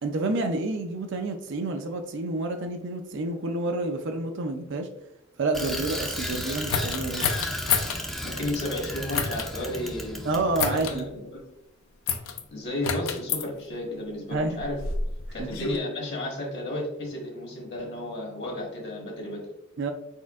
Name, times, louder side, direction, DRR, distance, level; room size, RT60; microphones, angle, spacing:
voice 1, 0.0-4.9 5.4-7.3 10.2-11.1 14.3-14.6 15.4-15.5 19.8-19.9, right 2 dB, 60° right, 6 dB, 0.4 m, -29 dB
Bicycle, 5.5-11.0, equal, ahead, 0.4 m, -34 dB
sound 1, 6.7-8.0 9.1-9.5 10.6-11.0 12.1-12.4 12.8-13.4 14.3-15.8, left 6 dB, 80° left, 0.5 m, -28 dB
voice 2, 8.2-10.3 10.6-11.4 12.5-14.8 15.3-19.4, left 1 dB, 55° left, 0 dB, 1.2 m, -33 dB
4.3 x 4.3 x 2.4 m, 0.87 s
head